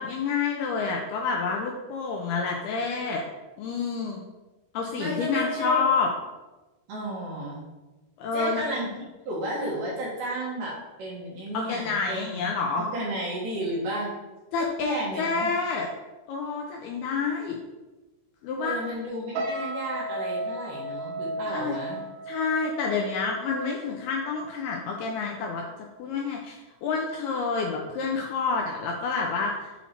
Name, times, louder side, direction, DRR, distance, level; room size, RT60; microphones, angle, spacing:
voice 1, 0.0-3.3 3.6-4.2 4.7-6.1 8.2-8.9 11.5-12.8 14.5-15.9 16.3-17.6 18.4-18.8 21.5-21.8 22.3-25.7 26.0-29.7, left 4 dB, 85° left, 0 dB, 2.3 m, -28 dB
voice 2, 5.0-5.8 6.9-7.7 8.3-8.9 9.3-12.4 12.9-14.1 14.6-15.5 18.6-22.0, right 1 dB, 65° right, -5 dB, 2.4 m, -32 dB
sound 1, 19.3-24.6 25.0-25.3, right 1 dB, 80° right, 2.8 m, -35 dB
7.2 x 4.2 x 4.3 m, 1.2 s
omnidirectional pair, 5.1 m